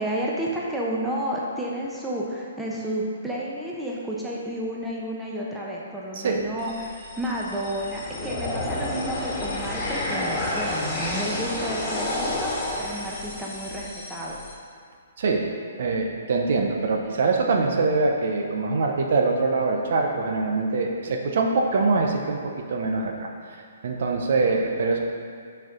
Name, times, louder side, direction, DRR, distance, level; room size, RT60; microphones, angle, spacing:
voice 1, 0.0-14.4, equal, 5° right, -5 dB, 1.0 m, -31 dB
voice 2, 6.1-6.4 15.2-15.4 15.8-22.4 22.7-23.3 23.8-25.0, right 3 dB, 60° right, 1 dB, 0.9 m, -23 dB
sound 1, 6.6-14.5, left 1 dB, 20° left, 1.7 m, -30 dB
6.1 x 4.6 x 5.2 m, 2.2 s
hypercardioid pair, 145°, 0 cm